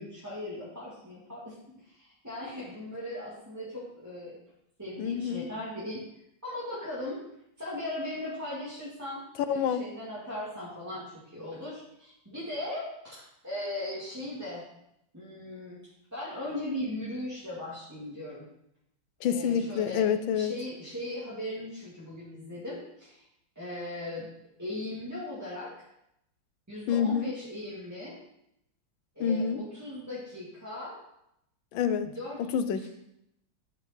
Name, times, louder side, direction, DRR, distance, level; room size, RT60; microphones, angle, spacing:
voice 1, 0.0-1.6 1.9-4.4 4.8-6.0 6.4-7.2 7.6-14.6 15.1-15.8 16.1-18.5 19.2-20.1 20.3-23.2 23.6-24.3 24.6-25.9 26.7-28.2 29.2-31.0 32.1-32.4, left 1 dB, 10° right, -10 dB, 2.2 m, -38 dB
voice 2, 5.0-5.5 9.5-9.8 19.2-20.5 26.9-27.3 29.2-29.6 31.7-32.1 32.4-32.9, left 7 dB, 90° left, 10 dB, 1.5 m, -27 dB
11.5 x 5.4 x 4.4 m, 0.80 s
omnidirectional pair, 2.1 m